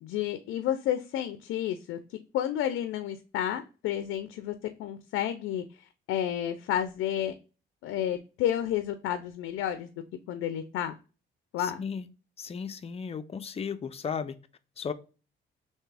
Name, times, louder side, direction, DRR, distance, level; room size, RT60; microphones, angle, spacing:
voice 1, 0.0-4.5 4.8-7.3 7.8-9.9 10.3-10.9 11.5-11.8, left 11 dB, 85° left, 10 dB, 0.4 m, -31 dB
voice 2, 11.6-12.1 12.4-14.4 14.8-14.9, left 6 dB, 30° left, 10 dB, 0.5 m, -35 dB
3.4 x 2.8 x 3.2 m, 0.33 s
cardioid pair, 90°, 20 cm